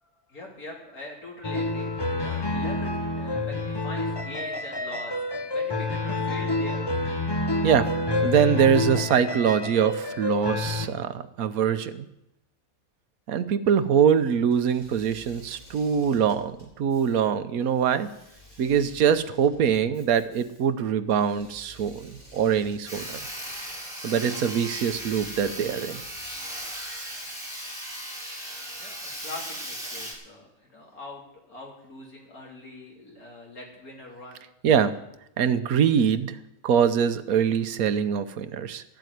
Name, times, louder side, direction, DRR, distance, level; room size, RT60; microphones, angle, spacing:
voice 1, 0.0-6.9 28.8-31.2 31.5-34.5, left 2 dB, 85° left, -1 dB, 3.5 m, -43 dB
sound 1, 1.4-10.9, left 2 dB, 20° left, 0.8 m, -28 dB
voice 2, 8.2-12.1 13.3-18.1 18.6-23.2 24.0-26.0 34.6-34.9 35.4-36.4 36.6-38.8, right 7 dB, 80° right, 11 dB, 1.3 m, -23 dB
Engine / Mechanisms, 14.5-27.4, equal, 65° left, 6.3 m, -53 dB
Sawing, 22.9-30.1, equal, ahead, 3.9 m, -37 dB
14.0 x 7.5 x 9.2 m, 0.86 s
omnidirectional pair, 1.5 m